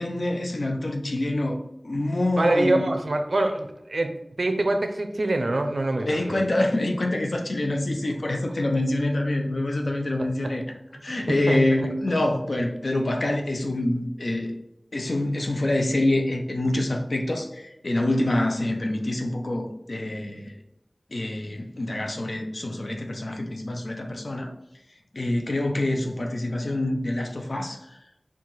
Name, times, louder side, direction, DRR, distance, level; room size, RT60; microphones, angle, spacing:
voice 1, 0.0-2.9 6.0-10.6 11.0-14.5 14.9-20.6 21.1-24.5 25.1-28.0, left 1 dB, 80° left, 2 dB, 0.6 m, -26 dB
voice 2, 2.4-6.4 11.5-11.6, right 2 dB, 80° right, 6 dB, 0.5 m, -25 dB
4.6 x 2.4 x 4.0 m, 0.91 s
wide cardioid pair, 55°, 0 cm